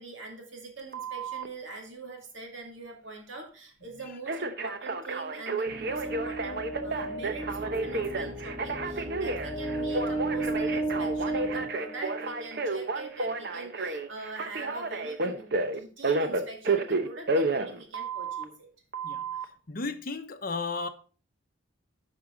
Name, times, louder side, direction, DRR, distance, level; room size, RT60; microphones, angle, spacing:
voice 1, 0.0-18.7, right 3 dB, 75° right, 2.4 m, -43 dB
Telephone, 0.9-1.5 4.3-18.4 18.9-19.4, right 3 dB, 55° right, 0.9 m, -31 dB
sound 1, 5.7-12.6, right 2 dB, 10° right, 1.5 m, -34 dB
voice 2, 19.0-19.4 19.7-20.9, left 3 dB, 45° left, 0.8 m, -34 dB
11.0 x 5.6 x 3.8 m
head